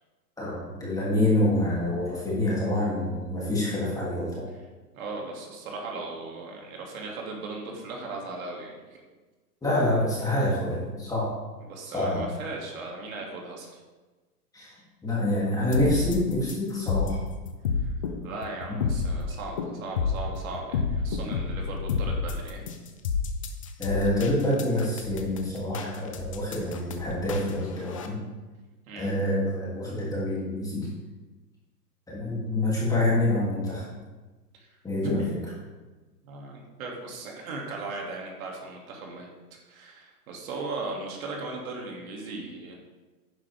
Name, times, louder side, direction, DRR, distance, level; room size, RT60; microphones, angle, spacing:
voice 1, 0.4-4.4 9.6-11.3 11.9-12.2 14.5-14.7 15.0-17.2 18.7-18.8 23.8-28.2 28.9-30.9 32.1-33.8 34.8-35.2, left 1 dB, 5° left, -7 dB, 3.0 m, -26 dB
voice 2, 4.9-9.0 11.6-13.8 17.8-17.9 18.2-22.7 28.9-29.1 34.6-34.7 35.0-35.1 36.2-39.3 39.7-42.8, right 3 dB, 55° right, -1 dB, 2.8 m, -37 dB
sound 1, 15.7-28.1, left 5 dB, 20° left, 0.4 m, -30 dB
11.0 x 9.9 x 3.6 m, 1.2 s
hypercardioid pair, 145°, 50 cm